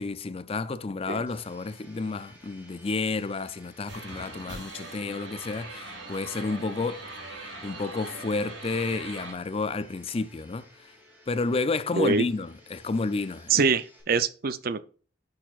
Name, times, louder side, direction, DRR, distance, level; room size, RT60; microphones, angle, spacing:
voice 1, 0.0-10.9 11.3-13.6 14.1-14.2, left 3 dB, 30° left, 0.4 m, -31 dB
Domestic sounds home sounds, 1.3-14.0, equal, 10° right, 4.0 m, -57 dB
sound 1, 3.9-9.3, right 2 dB, 85° right, 3.1 m, -41 dB
voice 2, 11.9-12.3 13.5-14.8, right 5 dB, 50° right, 0.5 m, -24 dB
10.0 x 6.4 x 2.5 m
head